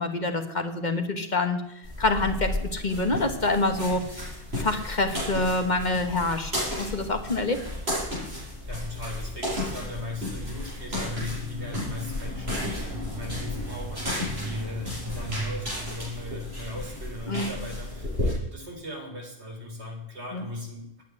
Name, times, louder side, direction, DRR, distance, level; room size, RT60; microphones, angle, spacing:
voice 1, 0.0-1.6 2.0-4.3 4.5-7.7 17.3-17.5 20.3-20.5, left 2 dB, 45° left, 6 dB, 1.4 m, -26 dB
sound 1, 1.8-18.3, left 1 dB, 70° right, 7.7 m, -33 dB
voice 2, 8.3-21.0, left 2 dB, 85° right, 0 dB, 4.1 m, -38 dB
9.8 x 9.2 x 9.8 m, 0.79 s
omnidirectional pair, 1.1 m